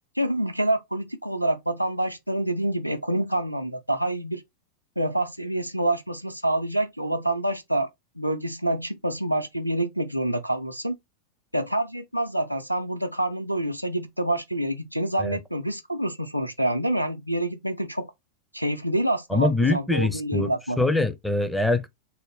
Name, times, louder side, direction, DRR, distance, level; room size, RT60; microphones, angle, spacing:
voice 1, 0.2-4.4 5.0-7.9 8.2-11.0 11.5-18.1 18.5-20.8, right 1 dB, 90° right, 0.4 m, -27 dB
voice 2, 19.3-20.5 20.8-21.9, left 2 dB, 5° left, 0.5 m, -23 dB
3.7 x 2.0 x 3.9 m
figure-of-eight pair, 90°, 0 cm